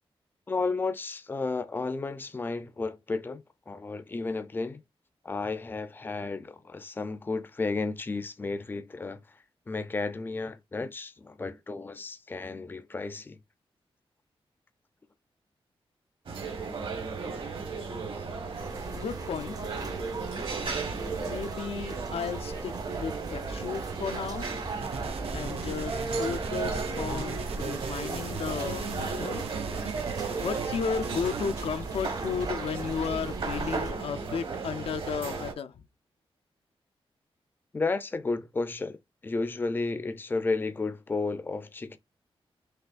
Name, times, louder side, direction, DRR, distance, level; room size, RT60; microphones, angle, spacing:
voice 1, 0.5-4.8 5.2-9.2 9.7-13.4 37.7-42.0, left 3 dB, 20° left, 0.5 m, -32 dB
sound 1, 16.3-35.5, right 4 dB, 60° right, 1.3 m, -35 dB
sound 2, 18.5-33.9, right 2 dB, 40° right, 0.7 m, -40 dB
voice 2, 18.9-20.0 21.3-24.6 25.3-29.4 30.4-35.8, left 6 dB, 75° left, 0.5 m, -34 dB
sound 3, 24.8-31.7, right 5 dB, 80° right, 0.8 m, -40 dB
5.7 x 3.0 x 2.4 m
wide cardioid pair, 160°, 10 cm